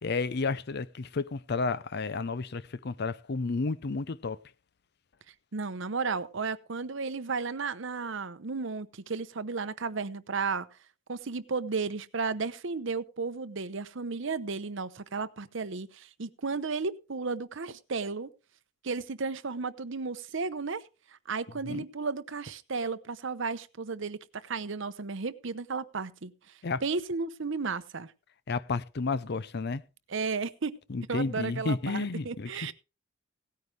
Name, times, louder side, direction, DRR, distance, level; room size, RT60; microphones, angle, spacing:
voice 1, 0.0-4.4 21.7-21.8 26.6-26.8 28.5-29.8 30.9-32.7, left 4 dB, 55° left, 0.6 m, -31 dB
voice 2, 5.5-10.7 11.1-18.3 18.8-20.8 21.3-26.3 26.8-28.1 30.1-30.7 31.1-32.7, right 4 dB, 65° right, 0.8 m, -33 dB
17.0 x 9.5 x 3.3 m
head